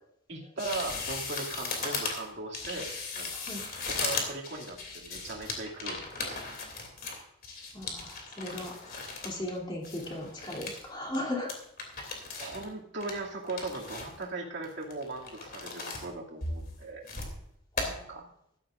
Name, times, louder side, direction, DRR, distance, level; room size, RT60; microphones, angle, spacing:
voice 1, 0.3-3.3 3.9-6.5 12.4-17.0 18.1-18.2, right 2 dB, 55° right, -2 dB, 2.5 m, -38 dB
sound 1, 0.6-9.5 9.8-10.8 11.1-11.2 11.5-12.7 13.0-14.2 14.6-16.1 16.4-17.4 17.8-17.9, left 3 dB, 45° left, 2.9 m, -37 dB
voice 2, 3.3-3.6 7.7-8.8 9.2-11.5 17.7-18.2, left 1 dB, 20° left, -1 dB, 2.9 m, -37 dB
16.0 x 12.5 x 2.6 m, 0.76 s
head